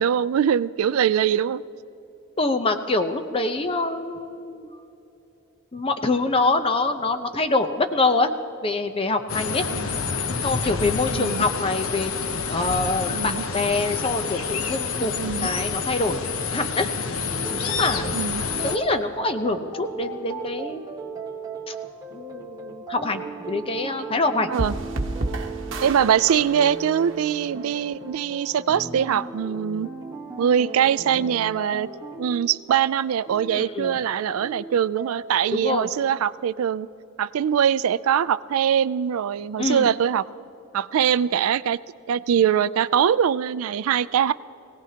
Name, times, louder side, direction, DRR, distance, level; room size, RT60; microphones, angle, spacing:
voice 1, 0.0-1.6 9.7-9.9 11.1-11.4 13.1-13.4 15.2-15.5 18.1-18.4 24.5-24.8 25.8-29.9 30.4-31.9 32.2-36.9 37.2-40.2 40.7-41.8 42.1-44.3, right 8 dB, 85° right, 16 dB, 0.4 m, -22 dB
voice 2, 2.4-4.7 5.7-8.3 8.6-9.7 10.4-12.1 12.5-16.9 17.5-18.2 18.6-20.9 21.7-21.8 22.1-24.5 33.5-34.0 35.5-35.9 39.6-39.9, left 3 dB, 25° left, 7 dB, 0.7 m, -25 dB
sound 1, 9.3-18.8, left 5 dB, 75° left, 0.8 m, -28 dB
sound 2, 17.2-35.6, right 4 dB, 20° right, 1.3 m, -37 dB
sound 3, 24.5-27.8, right 2 dB, 60° right, 1.1 m, -31 dB
22.5 x 17.5 x 2.9 m, 2.8 s
head